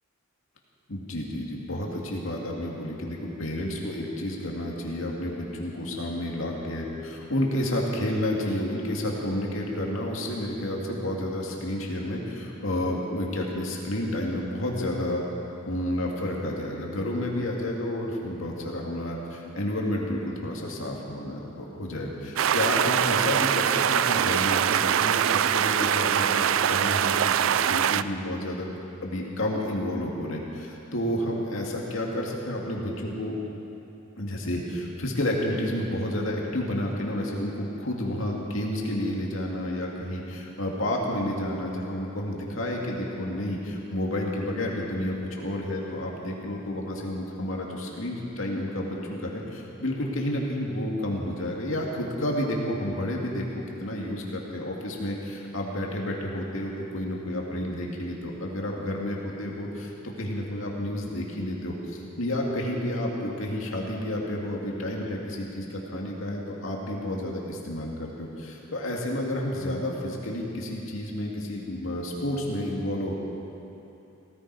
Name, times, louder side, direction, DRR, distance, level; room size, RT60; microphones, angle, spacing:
voice 1, 0.9-15.2 15.7-28.7 29.0-33.4 34.2-59.9 60.2-73.1, left 1 dB, 75° left, -2 dB, 2.3 m, -30 dB
sound 1, 22.4-28.0, right 9 dB, 75° right, 0.4 m, -23 dB
17.0 x 15.0 x 4.8 m, 3.0 s
head